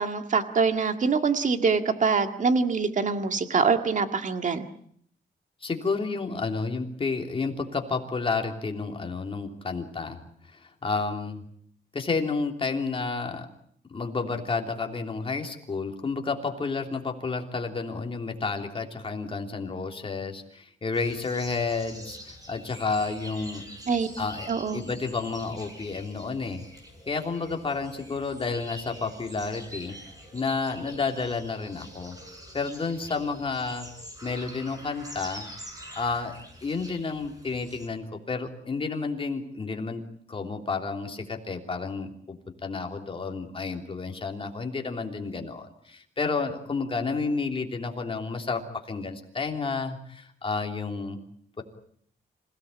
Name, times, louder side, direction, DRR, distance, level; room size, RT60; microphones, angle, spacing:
voice 1, 0.0-4.7 23.9-24.1 24.5-24.8, right 5 dB, 45° right, 7 dB, 1.9 m, -24 dB
voice 2, 5.6-10.2 10.5-11.4 11.9-13.5 13.9-23.6 24.2-26.6 27.1-29.9 30.3-32.2 32.5-33.9 34.2-35.5 36.0-40.0 40.3-42.4 42.6-51.2 51.6-51.7, left 4 dB, 30° left, 3 dB, 3.3 m, -31 dB
sound 1, 20.9-37.9, equal, 20° right, 6.9 m, -45 dB
27.0 x 17.5 x 8.6 m, 0.65 s
wide cardioid pair, 150°, 18 cm